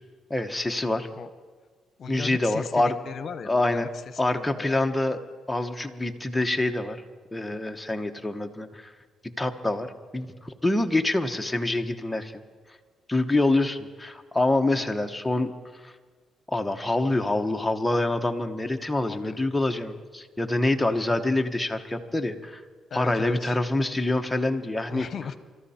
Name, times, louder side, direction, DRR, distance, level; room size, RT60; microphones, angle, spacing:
voice 1, 0.3-1.1 2.1-2.9 3.4-3.9 4.2-5.2 5.5-7.0 7.3-8.9 9.4-12.4 13.1-15.5 15.8-15.9 16.5-22.6 22.9-25.1, left 2 dB, 10° left, 5 dB, 1.1 m, -26 dB
voice 2, 2.0-4.8 14.7-14.8 19.0-19.4 22.9-23.6 24.9-25.4, left 6 dB, 55° left, 12 dB, 1.0 m, -37 dB
24.0 x 13.5 x 4.3 m, 1.5 s
cardioid pair, 90°, 0 cm